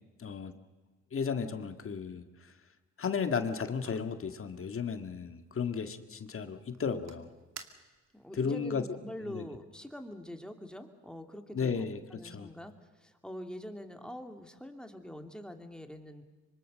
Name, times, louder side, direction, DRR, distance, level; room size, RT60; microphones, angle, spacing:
voice 1, 0.2-0.5 1.1-2.5 3.0-7.3 8.3-8.8 9.3-9.5 11.5-12.5, left 6 dB, 45° left, 8 dB, 2.1 m, -34 dB
sound 1, 3.1-8.3, right 7 dB, 60° right, 2.4 m, -56 dB
voice 2, 8.1-12.7 13.0-16.2, equal, 5° left, 5 dB, 2.7 m, -44 dB
25.0 x 25.0 x 6.5 m, 1.3 s
cardioid pair, 90°, 30 cm